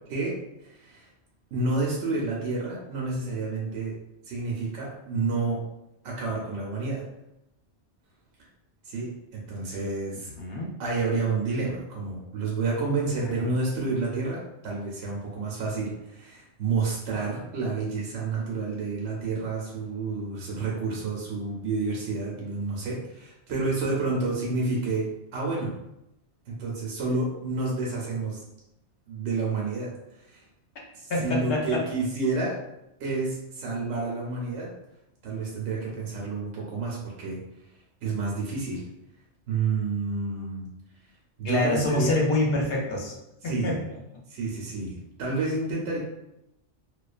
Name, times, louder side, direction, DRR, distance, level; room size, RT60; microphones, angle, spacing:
voice 1, 0.1-1.1 1.5-3.9 4.2-5.6 6.0-7.0 8.8-10.3 10.8-25.7 26.5-28.4 29.1-29.9 30.2-30.4 30.9-32.6 33.0-34.7 35.2-37.4 38.0-38.8 39.5-40.7 41.4-42.2 43.4-43.8 44.3-46.0, right 3 dB, 85° right, -3 dB, 0.9 m, -29 dB
voice 2, 10.4-10.8 13.4-13.5 31.1-31.8 41.4-43.1 43.4-43.8, left 2 dB, 60° left, -1 dB, 0.8 m, -26 dB
2.4 x 2.2 x 2.3 m, 0.86 s
omnidirectional pair, 1.2 m